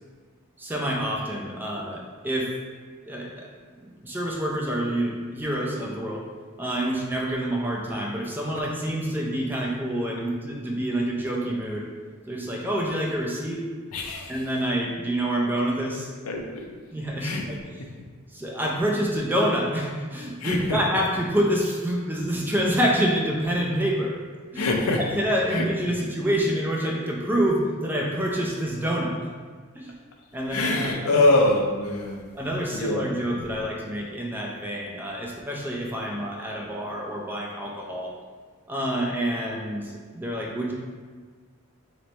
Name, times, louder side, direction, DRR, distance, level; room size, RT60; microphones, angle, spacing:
voice 1, 0.6-2.5 3.0-3.5 3.8-6.2 6.6-11.9 12.3-13.6 14.3-16.1 16.9-17.8 18.3-24.2 24.5-29.3 29.7-29.9 30.3-31.4 32.3-38.1 38.7-40.7, equal, 10° right, -2 dB, 0.5 m, -27 dB
voice 2, 13.9-14.3 16.3-16.6 17.2-17.4 20.4-20.6 24.6-25.0 30.5-32.2 32.7-33.1, left 2 dB, 90° left, 2 dB, 0.6 m, -23 dB
3.2 x 3.1 x 4.1 m, 1.5 s
head